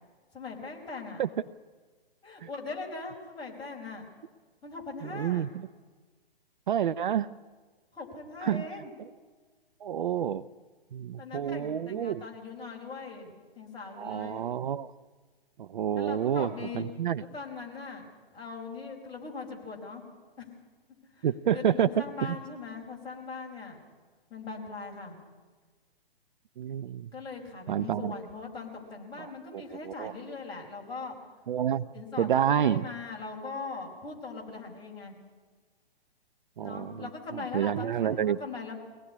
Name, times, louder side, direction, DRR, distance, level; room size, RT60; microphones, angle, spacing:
voice 1, 0.3-1.2 2.2-4.1 4.6-5.5 7.9-8.9 11.2-14.4 16.0-16.9 17.2-20.0 20.4-20.5 21.1-23.8 24.3-25.2 27.1-31.1 31.9-35.1 36.6-38.8, left 4 dB, 15° left, -2 dB, 4.8 m, -40 dB
voice 2, 5.0-5.7 6.7-7.3 8.4-8.7 9.8-10.4 10.9-12.2 14.0-14.9 15.6-16.5 16.7-17.2 21.2-21.9 22.2-22.4 26.6-27.1 27.7-28.1 29.2-29.3 29.8-30.1 31.5-31.9 32.2-32.8 36.6-37.1 37.5-38.4, right 9 dB, 55° right, 15 dB, 0.6 m, -28 dB
23.0 x 18.0 x 9.8 m, 1.4 s
figure-of-eight pair, 130°, 30 cm